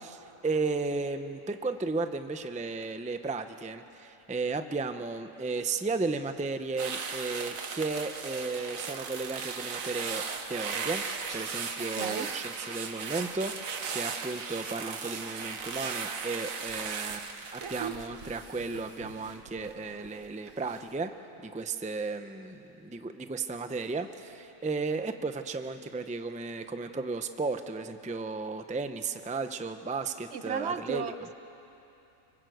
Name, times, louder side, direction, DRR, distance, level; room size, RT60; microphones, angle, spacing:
voice 1, 0.0-10.2 10.5-11.0 11.3-21.1 21.4-31.0, right 3 dB, 10° right, 8 dB, 0.6 m, -34 dB
sound 1, 6.8-20.1 20.5-20.8, right 5 dB, 85° right, 1.6 m, -37 dB
voice 2, 11.9-12.3 30.3-31.3, right 6 dB, 60° right, 10 dB, 1.0 m, -35 dB
25.5 x 24.0 x 7.9 m, 2.9 s
omnidirectional pair, 1.4 m